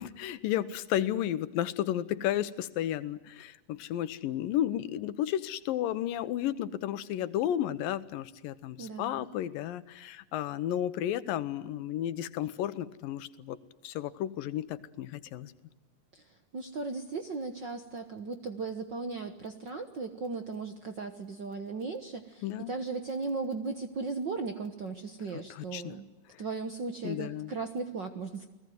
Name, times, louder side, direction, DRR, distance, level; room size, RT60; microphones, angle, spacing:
voice 1, 0.0-13.6 13.8-15.5 22.4-22.7 25.3-25.9 26.3-26.4 27.0-27.5, left 12 dB, 90° left, 14 dB, 2.8 m, -33 dB
voice 2, 8.8-9.2 16.1-26.1 26.4-28.5, right 4 dB, 55° right, 7 dB, 1.3 m, -37 dB
29.5 x 19.5 x 9.4 m, 1.1 s
omnidirectional pair, 3.9 m